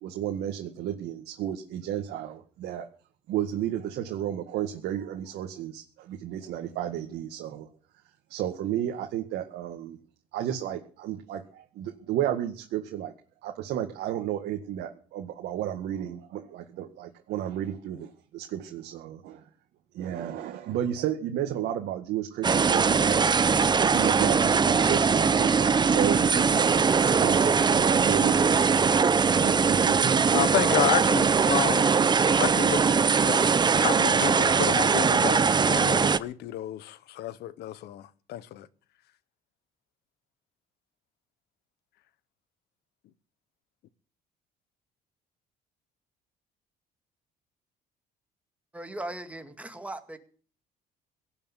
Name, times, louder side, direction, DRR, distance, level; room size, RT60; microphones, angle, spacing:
voice 1, 0.0-2.9 3.3-7.7 8.3-10.0 10.3-13.1 13.4-19.4 19.9-23.3 23.8-30.5, right 11 dB, 80° right, 1.9 m, -33 dB
sound 1, 22.4-36.2, right 5 dB, 25° right, 0.7 m, -21 dB
voice 2, 30.3-31.9 32.4-32.8 33.2-33.4 33.8-38.7, left 13 dB, 75° left, 1.1 m, -30 dB
voice 3, 48.7-50.2, right 1 dB, 10° right, 2.1 m, -38 dB
17.5 x 7.0 x 9.8 m
cardioid pair, 110°, 17 cm